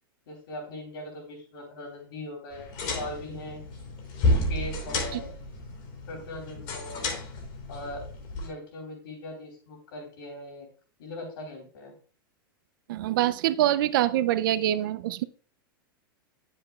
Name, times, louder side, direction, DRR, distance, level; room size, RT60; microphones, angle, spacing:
voice 1, 0.3-3.6 4.3-5.3 6.1-7.1 7.7-8.1 8.3-10.7 11.0-11.9, left 1 dB, 75° left, 0 dB, 3.6 m, -40 dB
sound 1, 2.5-8.5, left 2 dB, 55° left, 2.8 m, -31 dB
voice 2, 12.9-15.2, right 13 dB, 65° right, 15 dB, 0.5 m, -25 dB
9.5 x 7.6 x 2.3 m, 0.42 s
hypercardioid pair, 125°, 12 cm